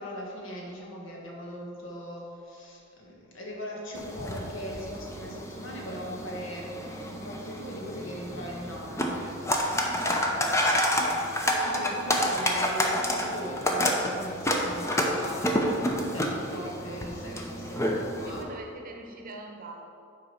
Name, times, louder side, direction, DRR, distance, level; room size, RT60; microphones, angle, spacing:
voice 1, 0.0-6.7 7.1-18.5, equal, 65° left, -2 dB, 1.7 m, -40 dB
sound 1, 3.9-18.4, left 1 dB, 15° left, 0.7 m, -29 dB
voice 2, 9.9-10.2 18.3-19.9, right 2 dB, 45° right, 2 dB, 0.9 m, -43 dB
8.0 x 4.9 x 5.6 m, 2.5 s
head